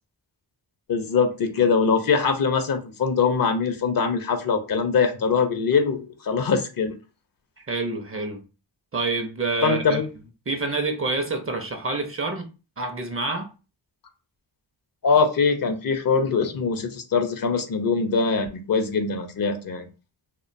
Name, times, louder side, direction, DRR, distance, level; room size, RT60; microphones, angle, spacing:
voice 1, 0.9-6.9 9.6-10.0 15.0-19.9, left 5 dB, 50° left, 0.6 m, -22 dB
voice 2, 7.7-8.4 8.9-10.0 10.5-12.5 12.8-13.5, right 3 dB, 30° right, 0.5 m, -27 dB
2.5 x 2.2 x 2.5 m
cardioid pair, 45°, 45 cm